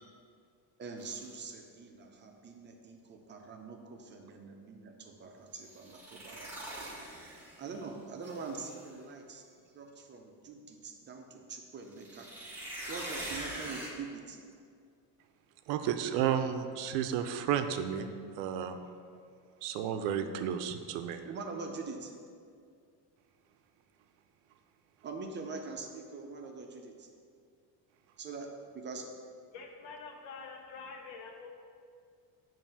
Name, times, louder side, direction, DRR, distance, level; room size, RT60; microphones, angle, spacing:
voice 1, 0.8-6.7 7.6-9.4 9.7-12.5 12.9-14.4 21.2-22.1 25.0-27.1 28.2-28.5 28.7-29.1, right 4 dB, 25° right, 3 dB, 0.5 m, -44 dB
sound 1, 1.0-1.3 5.7-7.8 8.2-8.8 11.9-13.9, right 1 dB, 5° right, 0.9 m, -43 dB
voice 2, 15.7-18.1 18.4-18.8 19.6-21.2, right 9 dB, 90° right, 9 dB, 0.6 m, -32 dB
voice 3, 29.5-31.5, left 4 dB, 85° left, 3 dB, 0.9 m, -46 dB
7.3 x 2.7 x 5.3 m, 2.3 s
cardioid pair, 145°, 43 cm